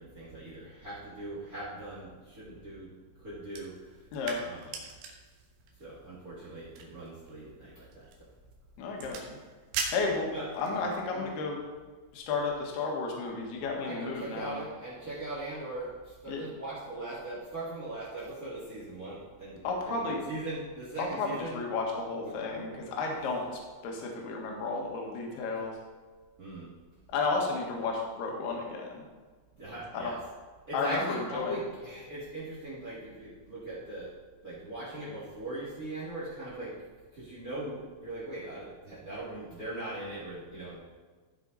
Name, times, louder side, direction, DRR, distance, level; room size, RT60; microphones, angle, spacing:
voice 1, 0.0-2.9 3.2-3.7 4.4-4.7 5.8-8.0 10.3-10.5 11.1-11.2 13.6-21.6 22.2-22.8 26.4-26.7 29.6-30.2 30.7-34.1 34.4-36.7 37.1-40.8, right 2 dB, 50° right, -7 dB, 1.0 m, -40 dB
sound 1, 3.5-10.8, right 5 dB, 70° right, 3.1 m, -42 dB
voice 2, 8.8-9.4 9.9-10.3 10.5-11.6 12.1-14.6 16.3-16.4 19.6-20.2 21.0-25.7 27.1-29.0 29.9-30.2 30.7-31.5, left 3 dB, 65° left, 0 dB, 3.0 m, -32 dB
15.0 x 5.6 x 4.1 m, 1.4 s
omnidirectional pair, 6.0 m